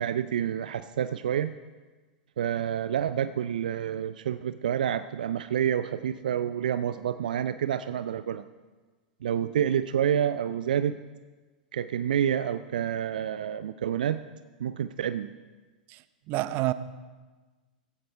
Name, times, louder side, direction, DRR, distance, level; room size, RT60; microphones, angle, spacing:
voice 1, 0.0-1.5 2.4-8.4 9.2-11.0 11.7-14.2 14.6-15.3, right 9 dB, 70° right, 0.5 m, -28 dB
voice 2, 16.3-16.7, right 18 dB, 40° right, 0.8 m, -28 dB
16.5 x 15.5 x 3.4 m
figure-of-eight pair, 95°, 5 cm